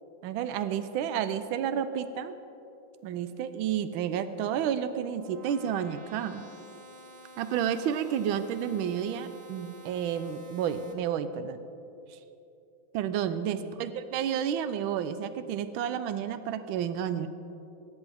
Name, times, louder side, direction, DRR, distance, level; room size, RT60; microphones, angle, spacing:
voice 1, 0.2-2.3 3.0-6.4 7.4-11.6 12.9-17.3, right 9 dB, 80° right, 11 dB, 1.4 m, -31 dB
sound 1, 4.4-10.9, equal, 25° right, 1.0 m, -50 dB
24.5 x 9.9 x 3.5 m, 2.8 s
omnidirectional pair, 2.2 m